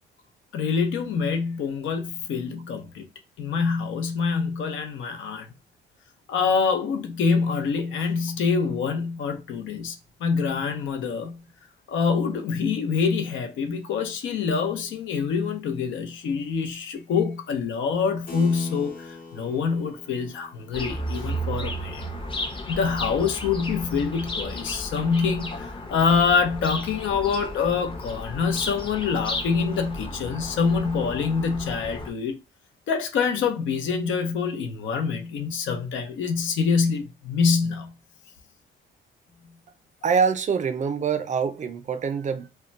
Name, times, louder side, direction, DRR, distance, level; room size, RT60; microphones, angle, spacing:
voice 1, 0.5-3.1 3.4-5.5 6.3-11.4 11.9-22.0 22.7-32.4 32.9-37.9, left 5 dB, 75° left, 0.6 m, -25 dB
Keyboard (musical), 18.3-24.3, left 3 dB, 45° left, 1.0 m, -45 dB
sound 1, 20.7-32.1, equal, 25° left, 0.7 m, -34 dB
voice 2, 40.0-42.5, right 6 dB, 40° right, 0.4 m, -25 dB
2.2 x 2.1 x 3.9 m
cardioid pair, 90°, 20 cm